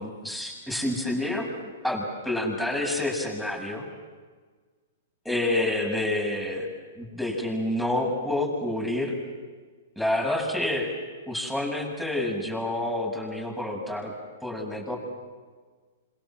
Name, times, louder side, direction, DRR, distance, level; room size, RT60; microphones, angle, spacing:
voice 1, 0.0-3.9 5.2-6.7 7.0-9.2 10.0-10.9 11.3-14.1 14.4-15.0, left 1 dB, 5° left, 1 dB, 7.4 m, -28 dB
27.5 x 27.0 x 7.8 m, 1.4 s
hypercardioid pair, 130°, 0 cm